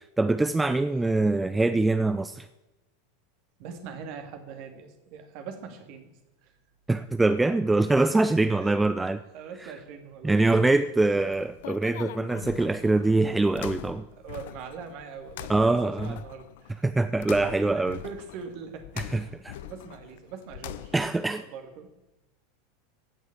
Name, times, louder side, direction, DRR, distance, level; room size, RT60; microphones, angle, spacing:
voice 1, 0.2-2.5 6.9-9.2 10.2-14.1 15.5-16.1 16.8-18.0 19.1-19.5 20.9-21.4, right 2 dB, 10° right, 10 dB, 0.5 m, -24 dB
voice 2, 3.6-6.1 6.4-6.5 8.5-8.8 9.3-11.3 14.2-16.9 17.7-20.9 21.3-21.9, right 6 dB, 45° right, 5 dB, 2.5 m, -42 dB
sound 1, 11.0-21.2, left 13 dB, 55° left, 0.5 m, -43 dB
16.0 x 6.2 x 8.6 m, 0.99 s
figure-of-eight pair, 80°, 0 cm